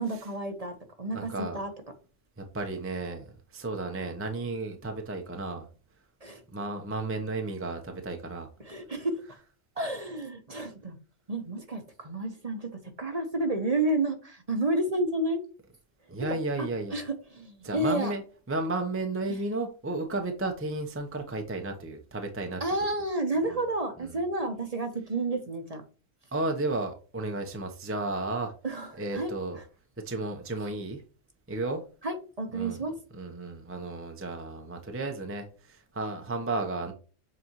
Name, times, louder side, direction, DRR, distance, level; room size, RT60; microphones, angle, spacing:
voice 1, 0.0-1.7 6.2-6.4 8.6-9.2 9.8-11.0 11.3-12.7 13.0-15.4 16.9-18.1 22.6-25.8 28.6-29.6 32.0-32.9, right 2 dB, 35° right, 6 dB, 1.1 m, -30 dB
voice 2, 1.1-1.6 2.4-3.2 3.5-5.7 6.5-8.5 16.1-16.9 17.6-18.2 18.5-22.6 23.5-23.6 24.0-24.2 26.3-28.5 29.0-29.6 30.0-31.0 31.5-31.8 32.5-32.8 33.1-36.9, right 2 dB, 10° right, 4 dB, 0.8 m, -33 dB
7.7 x 4.2 x 3.0 m, 0.36 s
omnidirectional pair, 1.3 m